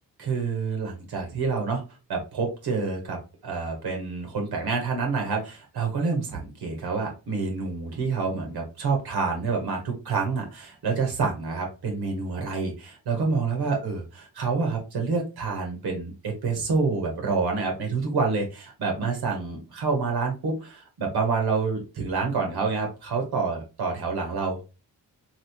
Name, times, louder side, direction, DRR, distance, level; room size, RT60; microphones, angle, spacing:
voice 1, 0.2-1.8 2.1-14.0 14.3-24.6, right 4 dB, 85° right, 2 dB, 1.1 m, -27 dB
2.9 x 2.9 x 2.8 m, 0.29 s
cardioid pair, 50°, 38 cm